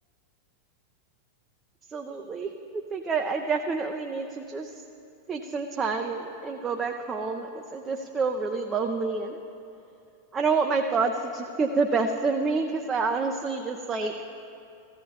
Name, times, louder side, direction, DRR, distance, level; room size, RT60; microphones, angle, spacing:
voice 1, 1.9-4.8 5.3-9.4 10.3-14.2, right 4 dB, 20° right, 2 dB, 0.6 m, -28 dB
15.0 x 15.0 x 2.9 m, 2.5 s
figure-of-eight pair, 90°, 0 cm